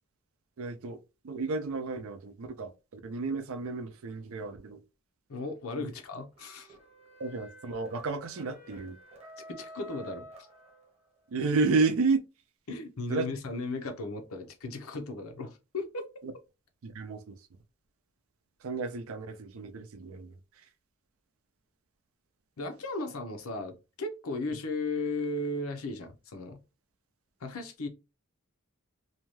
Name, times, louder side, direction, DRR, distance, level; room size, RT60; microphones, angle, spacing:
voice 1, 0.6-1.0 1.2-4.8 5.8-5.9 7.2-9.0 11.3-12.2 13.1-13.3 16.8-17.4 18.6-20.3, right 4 dB, 75° right, 0.5 m, -31 dB
voice 2, 5.3-6.7 9.5-10.3 12.7-16.0 22.6-26.6 27.4-27.9, left 2 dB, 80° left, 0.7 m, -36 dB
sound 1, 6.3-11.2, equal, 30° right, 0.9 m, -50 dB
2.7 x 2.2 x 3.0 m
head